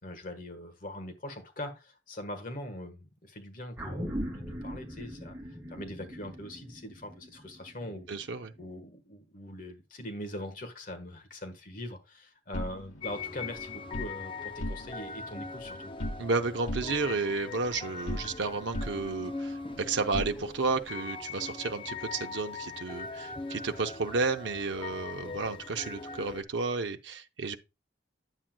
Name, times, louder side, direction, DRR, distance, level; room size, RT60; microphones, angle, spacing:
voice 1, 0.0-5.3 5.7-8.1 8.6-15.9, left 1 dB, 45° left, 1.4 m, -42 dB
sound 1, 3.8-8.4 8.7-8.8, equal, 15° right, 1.9 m, -40 dB
voice 2, 8.1-8.5 16.2-27.6, right 4 dB, 70° right, 0.7 m, -32 dB
sound 2, 12.5-14.1 14.5-15.2 15.4-16.4 16.7-18.5 18.7-20.8, left 1 dB, 85° left, 1.6 m, -39 dB
sound 3, 13.0-26.4, left 4 dB, 25° left, 0.6 m, -41 dB
9.7 x 7.6 x 2.2 m
head